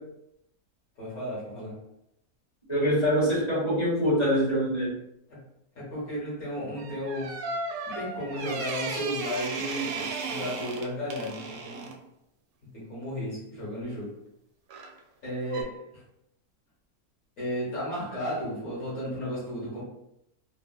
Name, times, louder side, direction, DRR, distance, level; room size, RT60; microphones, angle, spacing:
voice 1, 1.0-1.8 5.3-5.4 5.7-7.4 7.8-11.9 12.7-14.2 15.2-16.0 17.4-19.8, equal, 60° left, -8 dB, 1.6 m, -34 dB
voice 2, 2.7-4.9, equal, 20° left, -8 dB, 1.3 m, -24 dB
sound 1, 6.8-12.0 14.7-15.0 15.5-15.6, right 4 dB, 75° right, 0.9 m, -35 dB
4.1 x 2.1 x 2.3 m, 0.81 s
omnidirectional pair, 1.6 m